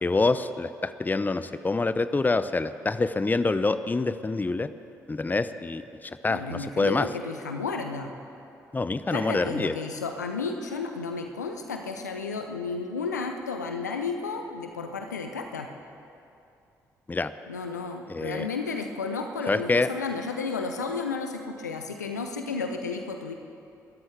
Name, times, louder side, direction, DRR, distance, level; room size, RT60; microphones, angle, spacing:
voice 1, 0.0-4.7 5.1-7.1 8.7-9.7 17.1-17.3 18.1-18.5 19.5-19.9, left 3 dB, 20° left, 13 dB, 0.7 m, -26 dB
voice 2, 6.3-8.1 9.1-15.7 17.5-23.3, left 4 dB, 90° left, 5 dB, 0.8 m, -32 dB
29.0 x 13.5 x 3.4 m, 2.7 s
figure-of-eight pair, 45°, 9 cm